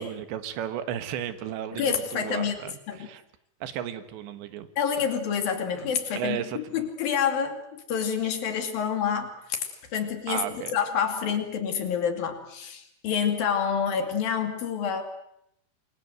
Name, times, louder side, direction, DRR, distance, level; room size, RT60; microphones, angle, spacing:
voice 1, 0.0-3.2 3.6-4.7 6.1-6.8 10.3-10.8, right 10 dB, 85° right, 11 dB, 3.8 m, -34 dB
voice 2, 1.7-2.6 2.9-3.1 4.8-10.5 10.7-15.0, left 7 dB, 60° left, 6 dB, 4.1 m, -28 dB
28.0 x 22.5 x 7.9 m, 0.77 s
omnidirectional pair, 5.0 m